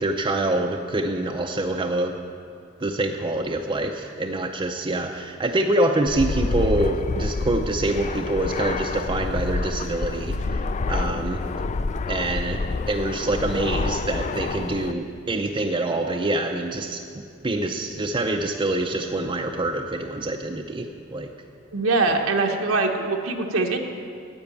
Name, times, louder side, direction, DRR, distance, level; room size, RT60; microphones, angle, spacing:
voice 1, 0.0-2.1 2.8-11.4 12.1-12.6 12.9-21.3, right 2 dB, 25° right, 2 dB, 0.5 m, -25 dB
Fixed-wing aircraft airplane, 6.1-14.9, left 3 dB, 35° left, 0.3 m, -28 dB
voice 2, 21.7-23.8, right 3 dB, 85° right, 2 dB, 1.0 m, -22 dB
10.5 x 8.0 x 8.4 m, 2.4 s
head